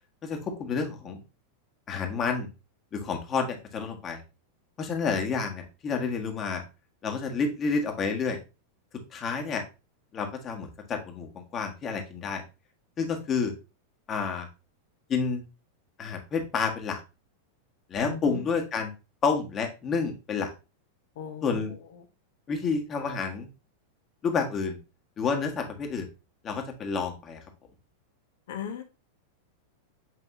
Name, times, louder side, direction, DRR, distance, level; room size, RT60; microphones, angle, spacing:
voice 1, 0.2-1.2 1.9-2.5 2.9-4.2 4.8-6.6 7.0-8.4 9.1-9.6 10.1-12.4 13.0-13.5 14.1-14.5 15.1-15.4 16.0-17.0 17.9-18.9 19.2-20.5 21.4-21.7 22.5-23.5 24.2-24.8 25.2-26.1 26.4-27.4, left 5 dB, 25° left, 3 dB, 1.5 m, -29 dB
voice 2, 18.0-18.4 21.2-21.6 28.5-28.8, left 8 dB, 55° left, 6 dB, 1.0 m, -36 dB
7.8 x 5.2 x 2.7 m, 0.29 s
figure-of-eight pair, 90°, 0 cm